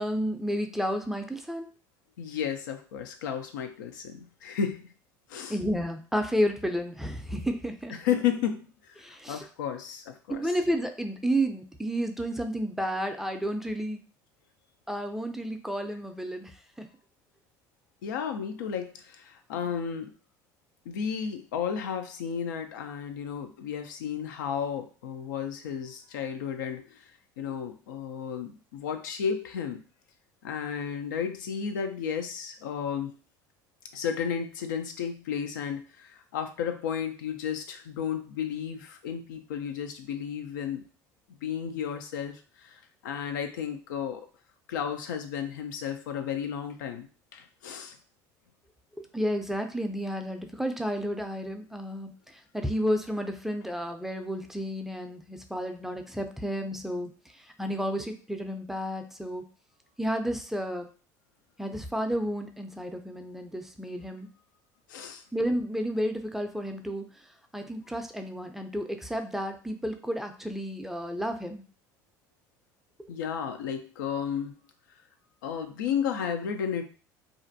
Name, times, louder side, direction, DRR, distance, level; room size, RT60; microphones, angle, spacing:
voice 1, 0.0-1.7 5.5-7.9 9.0-9.4 10.3-14.0 14.9-16.5 16.8-16.9 49.0-52.1 52.5-57.1 57.6-59.4 60.0-60.9 61.6-64.3 65.3-67.0 67.5-71.6, equal, 5° right, 5 dB, 0.4 m, -31 dB
voice 2, 2.2-4.9 5.3-5.6 7.9-10.5 18.0-20.1 20.9-27.1 27.4-29.8 30.4-33.1 33.9-40.8 41.4-44.3 44.7-47.1 47.3-48.0 64.9-65.2 73.1-74.5 75.4-76.8, left 7 dB, 90° left, 6 dB, 0.4 m, -33 dB
2.5 x 2.1 x 2.6 m, 0.38 s
supercardioid pair, 80°, 10 cm